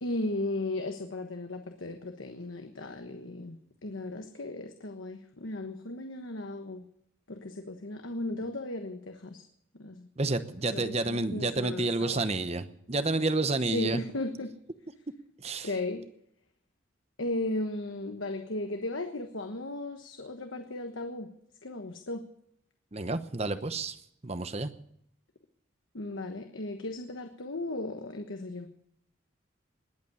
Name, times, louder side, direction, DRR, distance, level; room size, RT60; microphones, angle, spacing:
voice 1, 0.0-3.6 3.8-6.9 7.3-9.4 9.8-10.3 10.6-12.2 13.7-14.5 15.6-16.1 17.2-21.3 21.6-22.2 25.9-28.7, left 2 dB, 80° left, 5 dB, 1.3 m, -36 dB
voice 2, 10.2-14.0 15.4-15.7 22.9-23.9 24.2-24.7, right 2 dB, 30° right, 11 dB, 0.9 m, -30 dB
20.5 x 8.3 x 8.5 m, 0.72 s
head